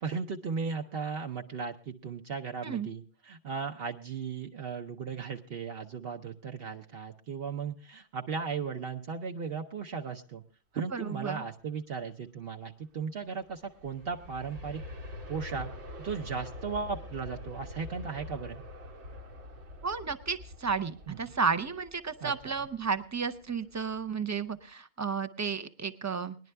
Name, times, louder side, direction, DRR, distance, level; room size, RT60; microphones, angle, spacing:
voice 1, 0.0-10.4 10.7-14.8 15.3-15.7 16.0-18.6 21.1-21.2 22.2-22.5, right 5 dB, 60° right, 3 dB, 0.9 m, -36 dB
voice 2, 10.9-11.4 19.8-26.4, right 5 dB, 25° right, 10 dB, 0.4 m, -32 dB
Aircraft, 13.3-24.1 24.6-24.7, left 1 dB, 80° right, 1.4 m, -45 dB
19.5 x 10.5 x 3.3 m, 0.37 s
omnidirectional pair, 1.2 m